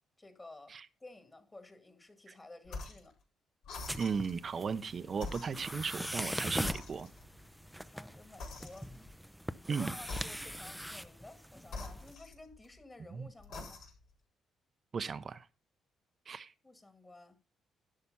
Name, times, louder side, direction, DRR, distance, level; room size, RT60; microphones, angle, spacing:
voice 1, 0.2-3.2 7.8-9.1 9.7-13.8 16.6-17.4, left 2 dB, 25° left, 2.0 m, -54 dB
sound 1, 2.7-3.1 3.6-4.4 5.1-6.3 6.6-7.4 8.4-9.1 10.0-10.7 11.7-12.8 13.4-14.1, left 3 dB, 80° left, 4.4 m, -45 dB
sound 2, 3.9-12.1, equal, ahead, 0.5 m, -41 dB
voice 2, 3.9-7.1 9.7-9.9 13.1-13.3 14.9-15.5 16.3-16.5, right 5 dB, 45° right, 0.7 m, -36 dB
11.5 x 5.9 x 5.5 m
cardioid pair, 90°, 0 cm